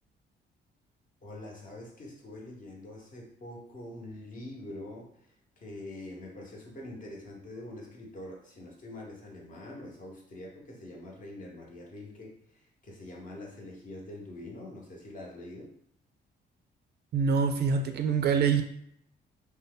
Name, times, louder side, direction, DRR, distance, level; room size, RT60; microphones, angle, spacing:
voice 1, 1.2-15.7, left 1 dB, 40° left, -1 dB, 0.9 m, -44 dB
voice 2, 17.1-18.6, right 6 dB, 55° right, 6 dB, 0.4 m, -25 dB
2.6 x 2.2 x 3.7 m, 0.70 s
cardioid pair, 90°, 20 cm